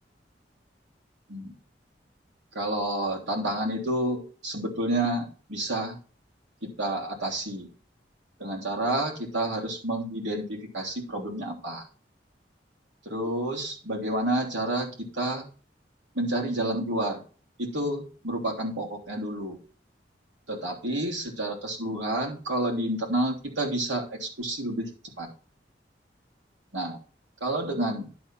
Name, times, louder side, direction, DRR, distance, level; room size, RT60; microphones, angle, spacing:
voice 1, 2.5-6.0 6.8-7.7 8.4-11.8 13.0-14.9 15.1-15.5 16.2-17.2 17.6-19.6 20.5-24.9 25.2-25.3 26.7-27.0 27.4-28.1, right 1 dB, 85° right, 0 dB, 3.2 m, -29 dB
11.5 x 4.3 x 5.8 m, 0.37 s
head